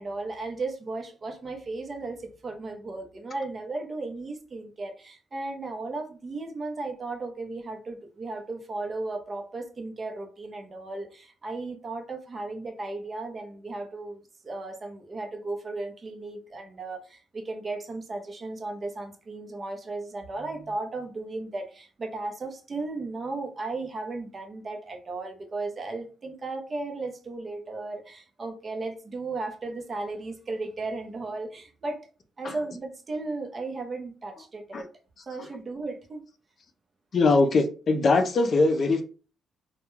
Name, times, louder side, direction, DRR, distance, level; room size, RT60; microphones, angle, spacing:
voice 1, 0.0-32.0 32.4-34.9 35.2-36.2, right 3 dB, 35° right, 0.7 m, -35 dB
voice 2, 37.1-39.0, left 3 dB, 50° left, 0.4 m, -21 dB
2.2 x 2.2 x 3.0 m
cardioid pair, 90°, 0 cm